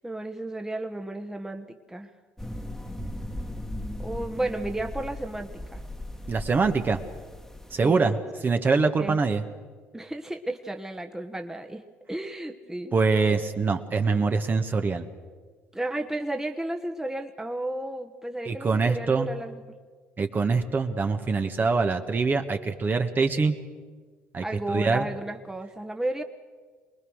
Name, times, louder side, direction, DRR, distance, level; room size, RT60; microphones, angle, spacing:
voice 1, 0.0-2.1 4.0-5.8 7.8-8.1 9.0-9.2 9.9-11.8 12.1-12.9 15.7-19.6 24.4-26.2, right 1 dB, 10° right, 5 dB, 1.4 m, -33 dB
sound 1, 2.4-7.8, left 1 dB, 5° left, 1.6 m, -37 dB
voice 2, 6.3-7.0 7.7-8.2 8.4-9.4 12.9-15.1 18.4-19.3 20.2-23.5 24.3-25.1, right 4 dB, 35° right, 6 dB, 1.6 m, -24 dB
24.0 x 20.5 x 6.5 m, 1.5 s
hypercardioid pair, 60°, 5 cm